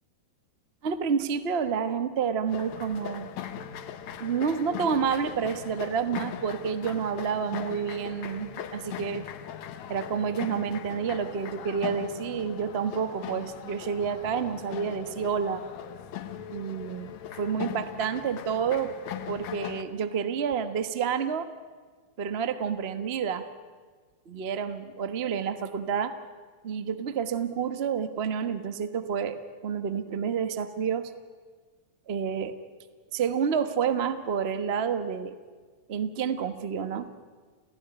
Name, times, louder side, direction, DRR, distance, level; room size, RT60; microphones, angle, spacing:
voice 1, 0.8-3.3 4.2-9.2 9.9-15.6 16.5-18.9 19.3-21.5 22.2-23.5 24.3-26.1 26.6-31.1 32.1-32.5 33.1-35.3 35.9-37.1, right 7 dB, 75° right, 10 dB, 0.5 m, -29 dB
sound 1, 2.5-19.8, left 9 dB, 75° left, 2.4 m, -39 dB
29.0 x 17.0 x 10.0 m, 1.5 s
omnidirectional pair, 3.3 m